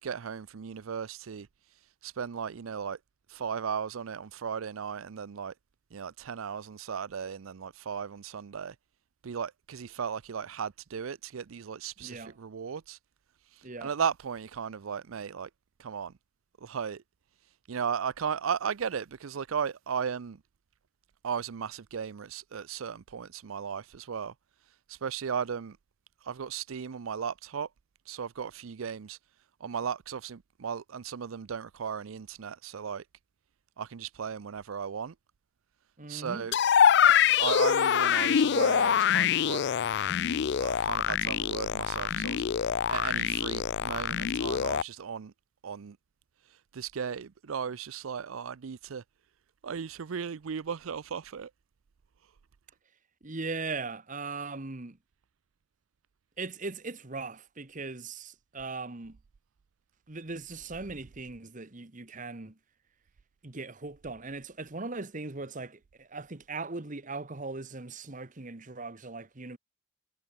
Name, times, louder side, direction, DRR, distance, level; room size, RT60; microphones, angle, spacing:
voice 1, 0.0-1.5 2.0-3.0 3.3-5.5 5.9-8.7 9.2-13.0 13.5-15.5 15.8-16.1 16.6-17.0 17.7-20.4 21.2-24.3 24.9-25.8 26.2-27.7 28.1-29.2 29.6-33.0 33.8-35.1 36.1-36.6 37.4-39.6 40.3-42.4 42.9-45.3 45.6-46.0 46.7-49.0 49.6-51.5, right 7 dB, 85° right, 0.5 m, -36 dB
voice 2, 12.0-12.4 13.6-13.9 36.0-36.5 53.2-55.0 56.4-59.2 60.1-62.6 63.4-69.6, right 3 dB, 40° right, 1.3 m, -39 dB
sound 1, 36.5-44.8, left 8 dB, 55° left, 0.4 m, -25 dB
head